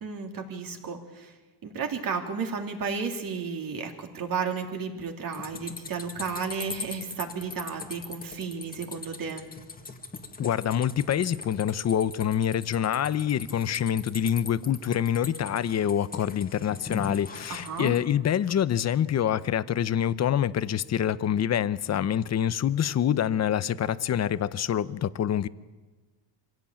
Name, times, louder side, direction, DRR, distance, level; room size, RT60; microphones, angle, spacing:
voice 1, 0.0-1.3 1.6-9.4 17.5-18.0, right 5 dB, 45° right, 3 dB, 3.1 m, -33 dB
sound 1, 5.3-18.0, left 4 dB, 20° left, 1.7 m, -41 dB
voice 2, 10.4-25.5, left 9 dB, 35° left, 15 dB, 0.7 m, -26 dB
25.0 x 16.5 x 8.7 m, 1.3 s
cardioid pair, 130°, 45 cm